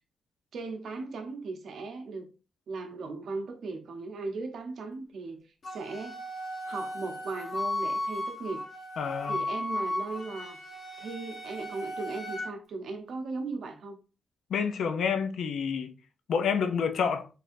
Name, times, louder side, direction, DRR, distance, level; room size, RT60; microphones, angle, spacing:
voice 1, 0.5-2.3 2.7-5.4 5.7-6.2 6.7-8.6 9.2-10.6 11.0-14.0, right 3 dB, 65° right, 0.8 m, -37 dB
Wind instrument woodwind instrument, 5.6-12.5, left 1 dB, 50° left, 1.2 m, -35 dB
voice 2, 9.0-9.4 14.5-15.9 16.3-17.3, left 6 dB, 75° left, 0.5 m, -28 dB
4.1 x 3.4 x 2.6 m
wide cardioid pair, 145°, 0 cm